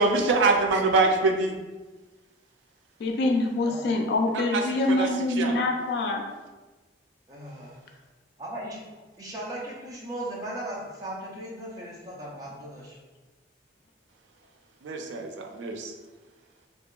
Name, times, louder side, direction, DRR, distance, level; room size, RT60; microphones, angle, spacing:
voice 1, 0.0-1.6 4.5-4.6 4.9-5.1 5.4-5.5 14.8-15.9, right 3 dB, 90° right, 4 dB, 0.3 m, -24 dB
voice 2, 3.0-6.2, left 2 dB, 60° left, 3 dB, 0.3 m, -25 dB
voice 3, 7.3-7.8 8.4-8.8 9.2-13.0, right 1 dB, 20° right, -5 dB, 0.5 m, -37 dB
2.7 x 2.2 x 2.3 m, 1.2 s
head